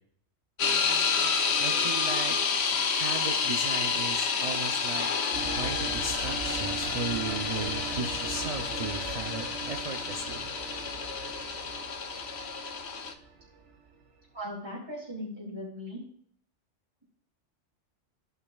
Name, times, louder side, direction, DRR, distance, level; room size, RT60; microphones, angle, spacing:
sound 1, 0.6-13.1, left 5 dB, 65° left, 1.0 m, -29 dB
voice 1, 1.6-2.4 2.7-5.1 5.4-10.5, right 3 dB, 40° right, 3 dB, 0.5 m, -36 dB
sound 2, 5.3-14.2, right 5 dB, 70° right, 1.2 m, -40 dB
voice 2, 14.3-16.0, equal, 20° right, -7 dB, 2.5 m, -38 dB
15.0 x 5.5 x 2.3 m, 0.64 s
omnidirectional pair, 1.3 m